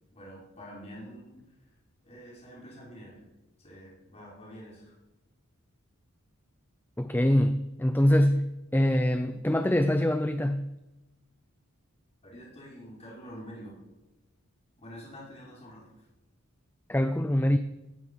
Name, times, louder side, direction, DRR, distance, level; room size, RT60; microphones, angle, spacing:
voice 1, 0.1-1.4 2.0-3.2 3.6-5.0 12.2-13.8 14.8-15.9, equal, 30° left, -4 dB, 5.7 m, -46 dB
voice 2, 7.0-10.7 16.9-17.6, left 1 dB, 10° left, 10 dB, 0.5 m, -24 dB
17.0 x 14.5 x 5.7 m, 1.0 s
head